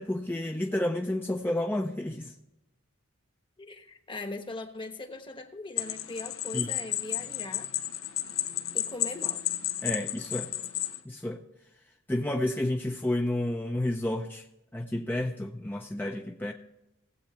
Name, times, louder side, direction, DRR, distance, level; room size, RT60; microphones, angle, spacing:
voice 1, 0.0-2.3 6.5-6.7 9.8-10.5 11.0-11.4 12.1-14.4 14.7-16.5, left 1 dB, 10° left, 0.5 m, -30 dB
voice 2, 3.6-7.7 8.7-9.4, left 2 dB, 25° left, 1.1 m, -40 dB
sound 1, 5.8-11.0, left 13 dB, 85° left, 0.8 m, -32 dB
18.0 x 7.9 x 3.1 m
head